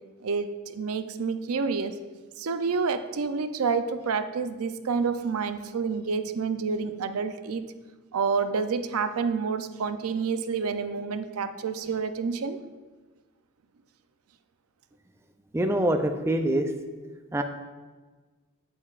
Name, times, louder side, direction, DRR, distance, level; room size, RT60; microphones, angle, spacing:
voice 1, 0.2-1.9 2.4-7.7 8.1-12.6, right 5 dB, 75° right, 10 dB, 0.5 m, -28 dB
voice 2, 15.5-16.7 17.3-17.4, right 1 dB, 10° right, 6 dB, 0.4 m, -24 dB
8.8 x 8.5 x 2.4 m, 1.3 s
head